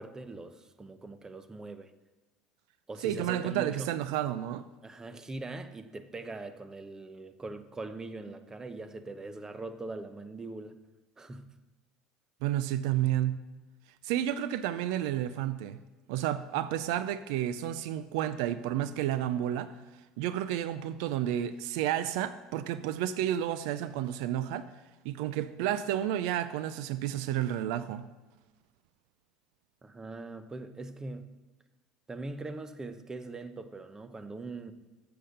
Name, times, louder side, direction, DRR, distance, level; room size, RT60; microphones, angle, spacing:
voice 1, 0.0-1.9 2.9-3.9 4.8-10.8 11.2-11.5 29.8-31.3 32.1-34.7, right 3 dB, 20° right, 0.8 m, -41 dB
voice 2, 3.0-4.6 12.4-13.5 14.0-15.8 16.1-19.7 20.2-24.7 25.0-28.1, right 11 dB, 75° right, 0.4 m, -31 dB
7.6 x 6.7 x 6.6 m
hypercardioid pair, 85°, 3 cm